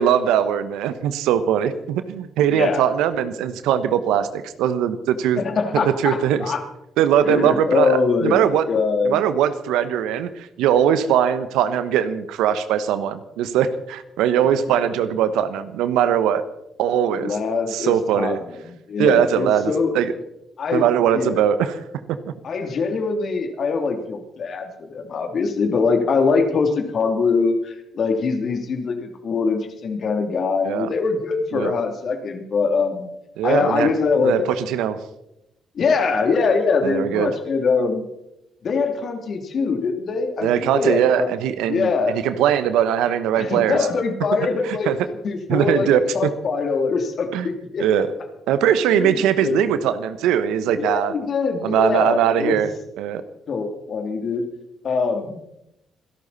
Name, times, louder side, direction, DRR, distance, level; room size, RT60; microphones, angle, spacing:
voice 1, 0.0-5.4 5.7-6.4 7.0-8.6 9.0-16.4 16.8-17.4 17.7-18.4 19.0-20.1 20.7-21.8 30.6-30.9 31.5-31.7 33.4-33.9 34.2-35.0 36.8-37.3 40.4-43.9 44.6-45.0 45.5-46.0 47.3-47.5 47.8-48.1 48.5-51.1 51.6-52.7 53.0-53.2, right 9 dB, 80° right, 12 dB, 1.2 m, -20 dB
voice 2, 2.5-2.8 5.4-6.6 7.2-9.2 17.2-18.4 18.6-19.9 20.6-20.8 21.1-21.4 22.4-33.1 33.4-34.5 35.7-38.1 38.6-41.3 41.7-42.2 43.3-44.9 45.2-47.9 48.9-49.6 50.8-52.6 53.5-54.5 54.8-55.4, left 4 dB, 60° left, 5 dB, 3.0 m, -23 dB
26.5 x 12.0 x 4.2 m, 0.85 s
hypercardioid pair, 50°, 0 cm